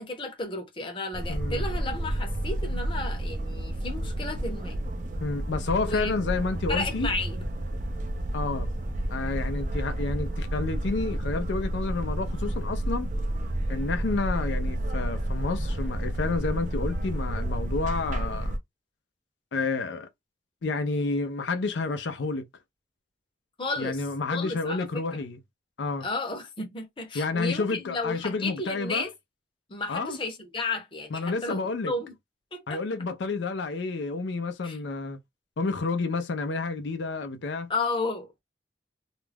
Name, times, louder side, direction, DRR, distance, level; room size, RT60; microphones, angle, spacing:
voice 1, 0.0-4.8 5.8-6.2 6.7-7.4 23.6-24.0 24.3-25.0 26.0-29.1 29.7-32.1 32.5-32.8 34.6-34.8 37.7-38.4, left 3 dB, 30° left, 0.7 m, -33 dB
sound 1, 1.1-18.6, right 1 dB, 45° right, 0.4 m, -30 dB
voice 2, 1.3-1.6 5.2-7.1 8.3-8.7 9.1-13.1 13.7-18.6 19.5-20.1 20.6-22.5 23.8-25.4 25.8-26.1 27.1-29.1 29.9-30.2 31.1-31.9 32.7-35.2 35.6-37.7, left 3 dB, 90° left, 0.5 m, -30 dB
2.4 x 2.2 x 3.3 m
head